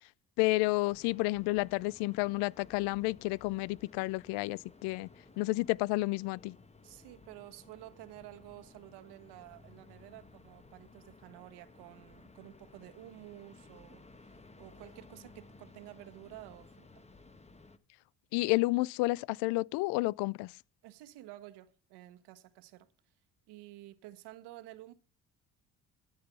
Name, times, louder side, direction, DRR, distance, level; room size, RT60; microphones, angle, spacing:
voice 1, 0.4-5.1 5.4-6.6 18.3-20.5, left 22 dB, 75° left, 0.5 m, -30 dB
sound 1, 0.9-17.8, left 3 dB, 15° left, 1.3 m, -57 dB
voice 2, 6.8-16.9 20.8-22.9 23.5-24.9, right 15 dB, 75° right, 1.3 m, -51 dB
13.0 x 5.6 x 8.0 m
supercardioid pair, 70°, 41 cm